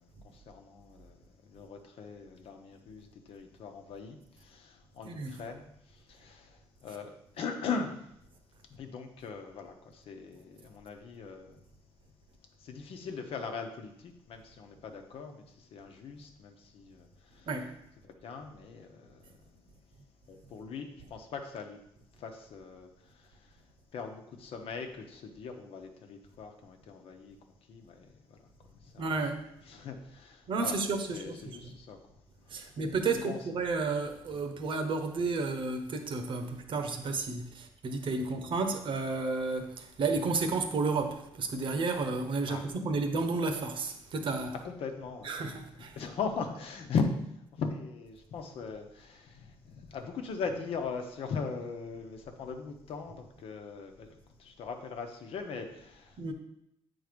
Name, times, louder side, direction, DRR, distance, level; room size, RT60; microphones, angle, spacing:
voice 1, 0.0-8.1 8.7-11.7 12.6-17.5 18.0-20.0 20.3-21.8 22.1-29.1 29.6-30.8 31.1-32.8 33.1-33.5 34.3-34.4 38.2-38.5 42.4-43.2 44.6-45.3 45.9-56.2, left 5 dB, 70° left, 1.0 m, -40 dB
voice 2, 29.0-29.4 30.5-31.6 32.5-44.5 45.2-46.0 56.2-56.3, right 3 dB, 55° right, 1.0 m, -32 dB
8.0 x 4.0 x 5.2 m
cardioid pair, 110°, 10 cm